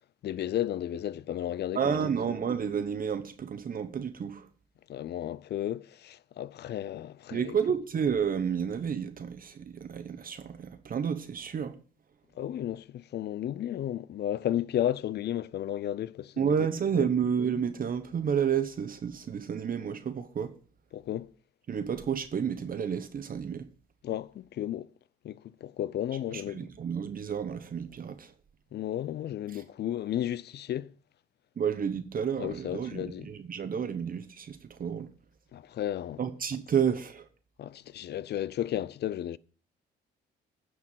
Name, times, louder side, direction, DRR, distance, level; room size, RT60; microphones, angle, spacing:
voice 1, 0.2-1.9 4.9-7.5 12.4-16.5 16.9-17.1 20.9-21.3 24.0-24.9 25.2-26.7 28.7-30.9 32.4-33.3 35.5-36.2 37.6-39.4, left 11 dB, 55° left, 0.5 m, -33 dB
voice 2, 1.7-4.5 7.3-11.7 16.4-20.5 21.7-23.6 26.3-28.3 29.5-29.6 31.6-35.1 36.2-37.2, right 7 dB, 45° right, 1.0 m, -30 dB
9.8 x 4.6 x 7.5 m
cardioid pair, 90°, 20 cm